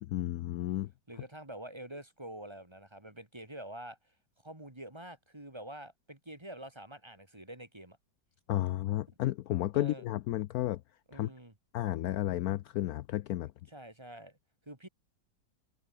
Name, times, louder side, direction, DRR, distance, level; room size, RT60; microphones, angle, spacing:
voice 1, 0.0-0.9 8.5-10.8 11.1-11.3 11.7-13.5, left 15 dB, 75° left, 0.8 m, -32 dB
voice 2, 1.1-4.1 4.4-8.0 9.7-10.1 11.1-11.5 13.7-14.4 14.7-14.9, right 1 dB, 15° right, 2.4 m, -46 dB
omnidirectional pair, 2.1 m